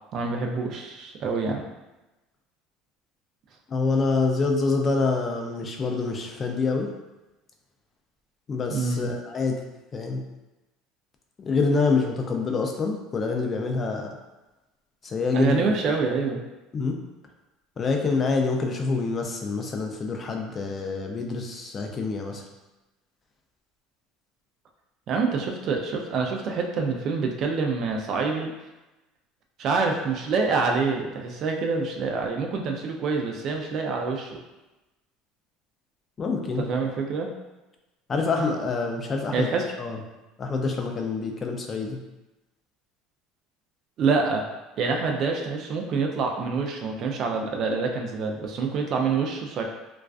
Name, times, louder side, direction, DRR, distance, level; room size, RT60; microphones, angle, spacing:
voice 1, 0.1-1.6 8.7-9.1 15.3-16.4 25.1-28.5 29.6-34.4 36.6-37.3 39.3-39.6 44.0-44.4 44.8-49.6, right 4 dB, 45° right, 2 dB, 0.3 m, -26 dB
voice 2, 3.7-6.9 8.5-9.6 9.9-10.2 11.4-14.2 15.0-15.8 16.7-17.0 17.8-22.4 36.2-36.7 38.1-39.5 39.8-40.0 40.4-42.0, left 4 dB, 30° left, 2 dB, 0.3 m, -26 dB
2.3 x 2.3 x 2.3 m, 1.1 s
supercardioid pair, 125°, 0 cm